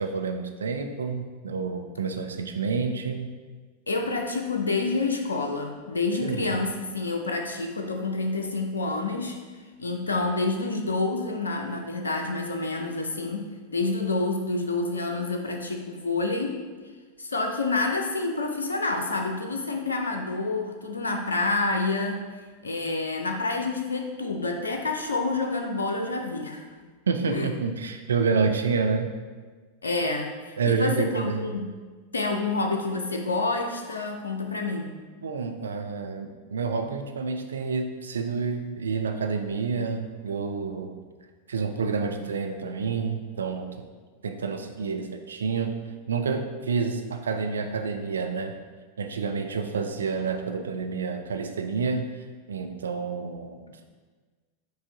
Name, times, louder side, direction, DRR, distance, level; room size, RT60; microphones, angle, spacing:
voice 1, 0.0-3.3 6.2-6.6 27.1-29.1 30.6-31.5 35.2-40.9 41.5-43.8 44.2-45.7 46.1-48.5 49.0-52.0 52.5-53.8, right 5 dB, 70° right, 5 dB, 0.3 m, -28 dB
voice 2, 3.9-9.4 9.8-16.6 17.2-22.2 22.6-26.7 27.3-27.5 29.8-31.7 32.1-34.9, left 3 dB, 75° left, 3 dB, 0.4 m, -28 dB
4.7 x 2.6 x 3.8 m, 1.4 s
figure-of-eight pair, 90°, 0 cm